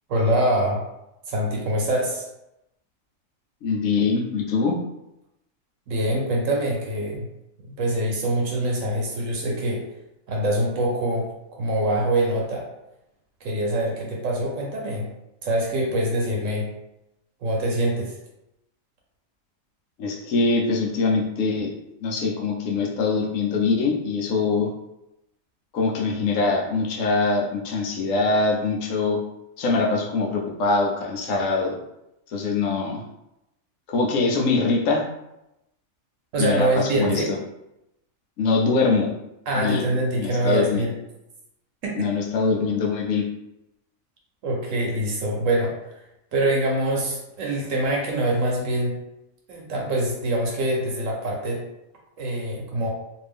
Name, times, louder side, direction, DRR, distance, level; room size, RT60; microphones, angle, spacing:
voice 1, 0.1-0.8 1.3-2.3 5.9-7.3 7.7-9.8 10.3-12.7 13.4-15.1 15.4-16.7 17.4-18.1 36.3-37.3 39.5-40.9 41.8-42.1 44.4-46.0 46.3-48.9 49.5-51.6 52.2-52.9, right 1 dB, 70° right, -1 dB, 1.0 m, -24 dB
voice 2, 3.6-4.8 20.0-21.7 22.0-24.7 25.7-29.2 29.6-31.8 32.3-33.0 33.9-35.0 36.4-37.2 38.4-39.1 39.6-39.8 40.2-40.8 41.9-43.2, left 4 dB, 70° left, -1 dB, 1.0 m, -23 dB
2.6 x 2.6 x 3.4 m, 0.88 s
omnidirectional pair, 1.4 m